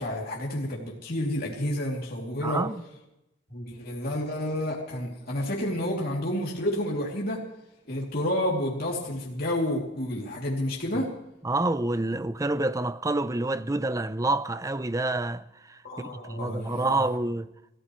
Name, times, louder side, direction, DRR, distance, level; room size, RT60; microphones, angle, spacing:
voice 1, 0.0-2.6 3.5-7.4 7.9-11.1 15.8-17.1, left 1 dB, 55° left, 2.9 m, -30 dB
voice 2, 2.4-2.8 10.9-11.0 11.4-17.5, right 2 dB, 20° right, 0.6 m, -28 dB
28.0 x 15.0 x 3.2 m
head